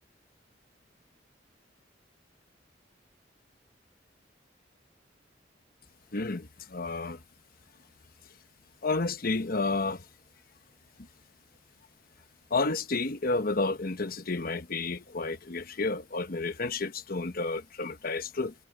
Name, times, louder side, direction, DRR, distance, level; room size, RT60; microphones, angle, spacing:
voice 1, 6.1-7.2 8.8-10.0 12.5-18.5, left 3 dB, 55° left, 1.1 m, -31 dB
head